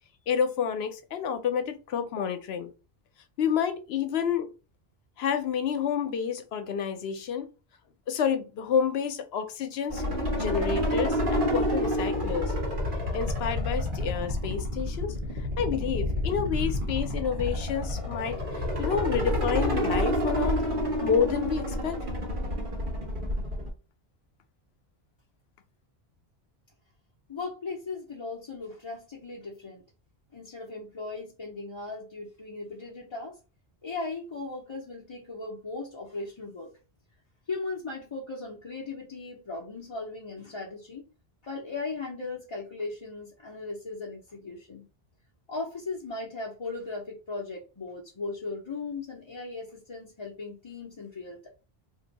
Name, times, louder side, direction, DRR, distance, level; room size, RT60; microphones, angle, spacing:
voice 1, 0.3-2.7 3.4-4.5 5.2-7.5 8.1-10.0 10.3-12.5 13.1-15.2 15.6-20.6 21.0-22.0, left 7 dB, 80° left, 0.9 m, -29 dB
sound 1, 9.9-23.7, left 1 dB, 55° right, 1.2 m, -29 dB
voice 2, 27.3-29.8 30.3-33.4 33.8-36.7 37.5-41.1 41.4-44.9 45.5-51.5, left 3 dB, 35° left, 0.6 m, -37 dB
2.8 x 2.7 x 3.9 m
omnidirectional pair, 1.0 m